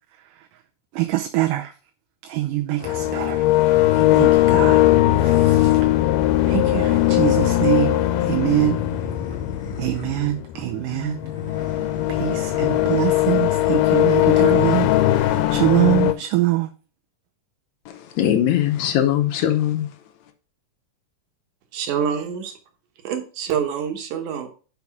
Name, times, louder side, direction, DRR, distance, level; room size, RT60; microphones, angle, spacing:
voice 1, 0.9-1.7 2.2-3.5 3.9-4.8 5.2-5.8 6.5-8.8 9.8-11.2 12.1-16.7, right 17 dB, 90° right, 2.3 m, -24 dB
sound 1, 2.8-16.1, left 15 dB, 85° left, 2.2 m, -19 dB
sound 2, 2.8-4.3 6.5-8.0 8.7-10.3 11.2-13.1 13.5-13.8 14.1-15.6, left 2 dB, 30° left, 1.0 m, -38 dB
voice 2, 17.9-20.0, left 11 dB, 70° left, 1.9 m, -21 dB
voice 3, 21.7-22.5 23.0-24.5, right 7 dB, 75° right, 2.5 m, -26 dB
5.9 x 5.3 x 5.9 m
omnidirectional pair, 3.7 m